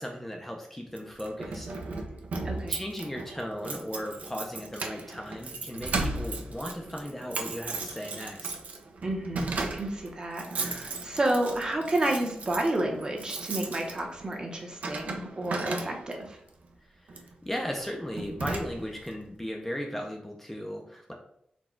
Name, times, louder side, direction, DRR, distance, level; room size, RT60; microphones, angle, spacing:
voice 1, 0.0-1.7 2.7-8.5 16.8-21.1, equal, 10° left, 0 dB, 0.4 m, -36 dB
Keys jangling, 1.0-16.3 17.1-17.3 17.8-17.9 18.2-19.1, right 3 dB, 65° right, 0.5 m, -36 dB
voice 2, 2.4-2.8 9.0-16.4, right 1 dB, 30° right, 1 dB, 0.8 m, -30 dB
4.2 x 2.2 x 4.4 m, 0.73 s
wide cardioid pair, 160°, 3 cm